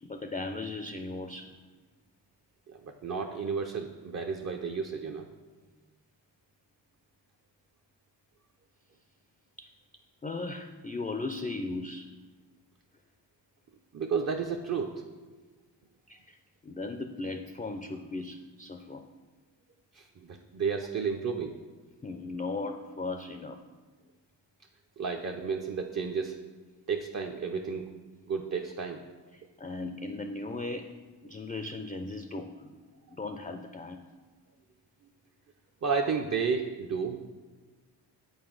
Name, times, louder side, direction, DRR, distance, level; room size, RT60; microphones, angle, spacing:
voice 1, 0.0-1.6 9.6-9.7 10.2-12.1 16.1-16.4 16.6-19.0 22.0-23.6 29.3-30.9 31.2-32.7 33.1-34.0, left 3 dB, 20° left, 6 dB, 0.3 m, -37 dB
voice 2, 2.7-5.3 13.9-15.0 19.9-21.5 25.0-26.4 26.9-27.9 28.3-29.0 35.8-37.2, right 5 dB, 40° right, 3 dB, 0.5 m, -32 dB
7.9 x 4.0 x 3.8 m, 1.3 s
cardioid pair, 50°, 44 cm